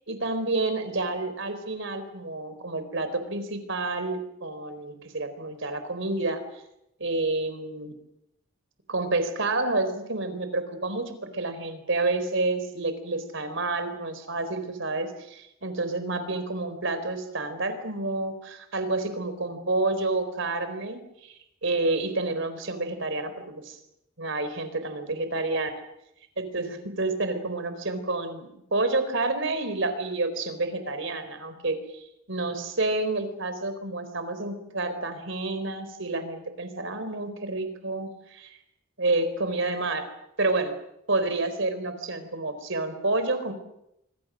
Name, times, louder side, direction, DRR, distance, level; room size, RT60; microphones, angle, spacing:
voice 1, 0.1-6.4 7.0-8.0 8.9-23.8 24.2-25.7 26.4-38.6 39.0-40.1 40.4-40.7 41.1-43.5, right 2 dB, 60° right, 10 dB, 4.2 m, -29 dB
25.5 x 25.5 x 6.4 m, 0.82 s
head